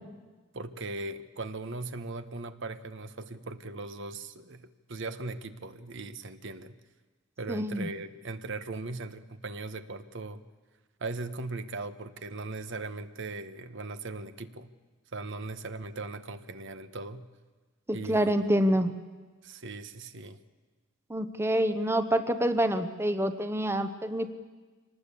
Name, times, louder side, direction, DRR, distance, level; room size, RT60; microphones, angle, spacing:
voice 1, 0.5-6.7 7.4-10.4 11.0-14.7 15.1-17.2 17.9-18.5 19.4-20.4, right 3 dB, 60° right, 10 dB, 1.1 m, -39 dB
voice 2, 7.5-7.9 17.9-18.9 21.1-24.3, right 1 dB, 10° right, 9 dB, 0.9 m, -27 dB
25.0 x 19.5 x 8.5 m, 1.3 s
head